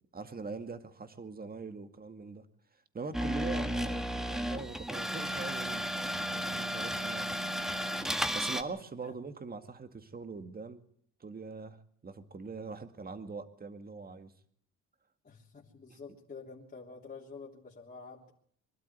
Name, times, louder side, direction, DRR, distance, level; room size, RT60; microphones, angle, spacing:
voice 1, 0.1-2.5 2.9-5.8 6.3-7.3 8.3-10.8 11.2-14.3 15.9-16.0, right 4 dB, 30° right, 8 dB, 2.1 m, -42 dB
sound 1, 3.1-8.6, equal, ahead, 1.8 m, -33 dB
voice 2, 8.6-9.1 15.2-18.3, left 4 dB, 30° left, -4 dB, 3.3 m, -49 dB
23.5 x 12.5 x 9.5 m, 0.64 s
cardioid pair, 90°, 30 cm